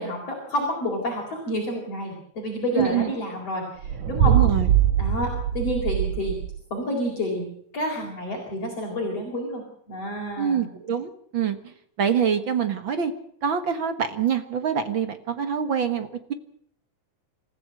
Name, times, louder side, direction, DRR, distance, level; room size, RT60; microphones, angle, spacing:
voice 1, 0.0-4.4 5.0-6.4 6.7-7.5 7.7-10.7, left 1 dB, 55° left, 0 dB, 5.3 m, -29 dB
voice 2, 2.7-3.1 4.2-4.7 10.4-11.6 12.0-13.1 13.4-16.3, right 8 dB, 50° right, 9 dB, 1.9 m, -25 dB
sound 1, 3.8-6.6, right 10 dB, 75° right, 2.5 m, -22 dB
27.5 x 15.0 x 7.7 m, 0.68 s
omnidirectional pair, 3.4 m